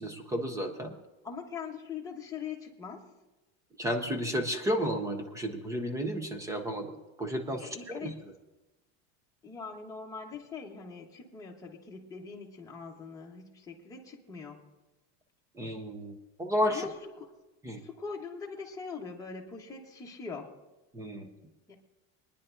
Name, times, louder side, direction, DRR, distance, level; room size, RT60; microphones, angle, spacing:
voice 1, 0.0-0.9 3.8-7.7 8.0-8.1 15.6-16.9 17.6-17.8 20.9-21.3, equal, 10° right, 7 dB, 0.5 m, -32 dB
voice 2, 1.2-3.1 7.6-8.2 9.4-14.6 16.7-17.3 17.8-20.5 21.7-21.8, left 5 dB, 10° left, -2 dB, 1.1 m, -42 dB
26.0 x 10.0 x 2.6 m, 1.1 s
supercardioid pair, 170°, 39 cm